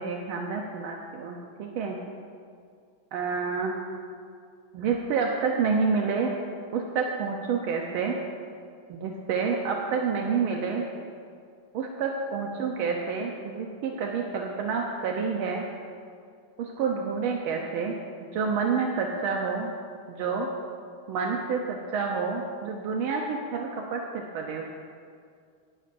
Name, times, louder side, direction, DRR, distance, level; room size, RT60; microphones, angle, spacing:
voice 1, 0.0-2.0 3.1-3.8 4.7-6.3 6.7-8.2 8.9-10.9 11.7-15.7 16.6-18.0 18.3-19.7 20.1-20.5 21.1-24.6, right 5 dB, 80° right, 1 dB, 1.6 m, -28 dB
17.5 x 9.8 x 2.5 m, 2.2 s
omnidirectional pair, 2.3 m